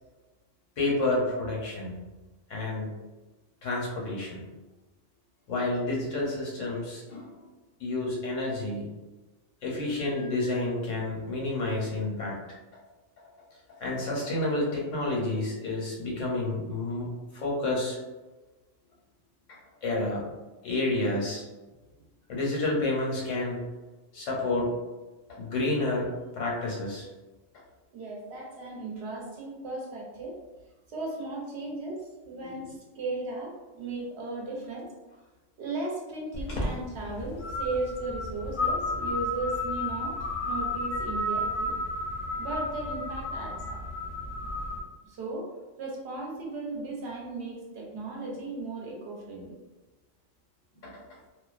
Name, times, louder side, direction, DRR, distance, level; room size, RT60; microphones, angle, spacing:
voice 1, 0.8-2.0 2.5-2.9 3.6-4.5 5.5-7.4 7.8-8.9 9.6-12.4 13.8-18.0 19.5-20.2 20.6-21.5 22.3-23.6 24.1-24.7 25.3-27.1 32.4-32.7 50.8-51.0, left 2 dB, 90° left, -2 dB, 1.1 m, -30 dB
voice 2, 27.9-30.4 30.9-34.9 35.6-41.7 42.4-43.8 45.0-45.5 45.8-49.6, right 2 dB, 65° right, -2 dB, 0.9 m, -36 dB
sound 1, 36.3-44.8, left 1 dB, 55° left, 0.6 m, -32 dB
2.5 x 2.1 x 2.3 m, 1.2 s
omnidirectional pair, 1.3 m